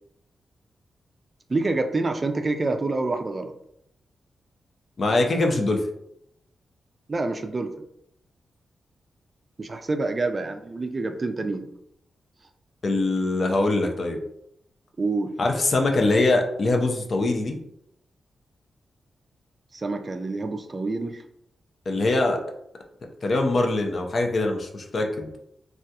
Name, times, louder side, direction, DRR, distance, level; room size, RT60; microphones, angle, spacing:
voice 1, 1.5-3.5 7.1-7.8 9.6-11.7 15.0-15.3 19.7-21.2, right 3 dB, 35° right, 6 dB, 0.3 m, -27 dB
voice 2, 5.0-5.9 12.8-14.2 15.4-17.6 21.9-22.4 23.2-25.3, left 2 dB, 50° left, 3 dB, 0.5 m, -23 dB
3.3 x 2.3 x 2.7 m, 0.75 s
cardioid pair, 90°, 0 cm